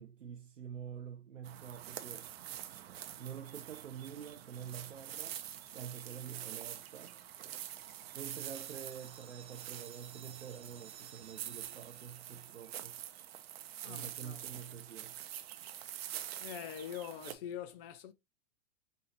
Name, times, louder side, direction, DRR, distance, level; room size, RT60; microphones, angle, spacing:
voice 1, 0.0-2.3 3.2-5.4 5.7-7.2 8.1-13.0 13.8-15.2, right 8 dB, 90° right, 0.5 m, -47 dB
sound 1, 1.4-17.3, right 11 dB, 55° right, 0.7 m, -46 dB
sound 2, 8.3-13.9, right 8 dB, 15° right, 0.5 m, -58 dB
voice 2, 13.8-14.4 16.4-18.1, left 9 dB, 50° left, 0.8 m, -44 dB
5.2 x 2.8 x 2.8 m
figure-of-eight pair, 100°, 36 cm